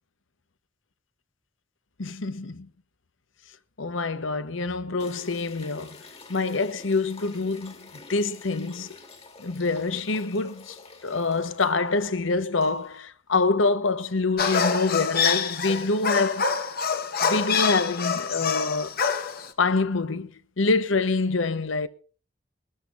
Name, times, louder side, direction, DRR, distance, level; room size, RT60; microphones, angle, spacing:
voice 1, 2.0-2.7 3.8-6.0 6.3-9.0 9.4-10.8 11.0-16.5 17.2-18.9 19.6-21.9, left 3 dB, 70° left, 1.0 m, -26 dB
sound 1, 5.0-13.0, left 3 dB, 30° left, 1.8 m, -48 dB
dog kennel, 14.4-19.5, left 6 dB, 45° left, 1.2 m, -26 dB
23.0 x 13.5 x 2.5 m
head